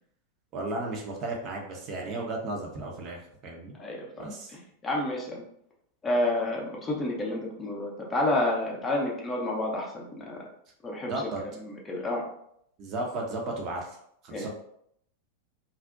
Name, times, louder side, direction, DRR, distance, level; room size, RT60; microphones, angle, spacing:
voice 1, 0.5-3.7 4.2-4.5 11.1-11.4 12.8-14.0 14.2-14.5, right 2 dB, 35° right, 0 dB, 0.5 m, -34 dB
voice 2, 3.7-4.3 4.5-5.4 6.0-10.4 10.8-12.2 14.3-14.5, left 1 dB, 20° left, -1 dB, 0.5 m, -30 dB
2.5 x 2.0 x 2.4 m, 0.71 s
figure-of-eight pair, 90°, 0 cm